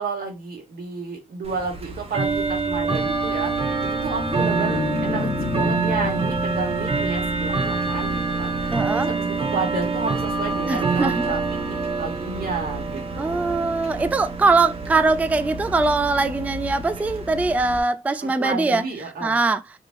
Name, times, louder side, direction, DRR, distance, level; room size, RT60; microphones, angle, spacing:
voice 1, 0.0-13.5 18.2-19.4, right 4 dB, 80° right, 2.2 m, -31 dB
Bell / Tick-tock, 1.4-17.8, right 4 dB, 40° right, 1.1 m, -26 dB
sound 1, 3.7-8.1, left 5 dB, 70° left, 0.8 m, -31 dB
voice 2, 8.7-9.1 10.7-11.1 13.2-18.8 19.2-19.6, right 3 dB, 10° right, 0.3 m, -21 dB
5.0 x 3.5 x 2.5 m
wide cardioid pair, 115°, 15 cm